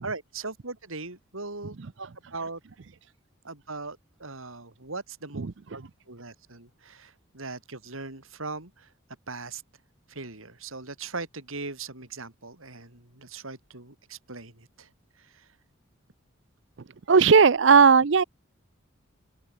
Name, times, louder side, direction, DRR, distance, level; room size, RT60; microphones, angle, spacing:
voice 1, 0.0-2.6 3.4-8.9 9.3-9.6 10.1-14.9 15.2-15.5, right 3 dB, 85° right, 4.8 m, -39 dB
voice 2, 17.1-18.2, right 5 dB, 60° right, 0.5 m, -16 dB
open air
head